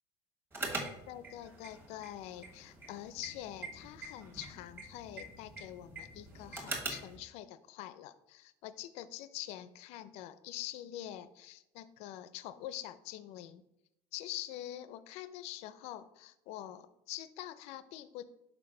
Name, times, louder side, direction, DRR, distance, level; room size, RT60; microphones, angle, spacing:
car alarm lights switched on beeps, 0.5-7.2, right 2 dB, 20° right, 1.3 m, -44 dB
voice 1, 1.1-13.6 14.1-18.2, left 13 dB, 60° left, 14 dB, 0.4 m, -45 dB
5.8 x 4.7 x 3.7 m, 0.84 s
cardioid pair, 150°, 12 cm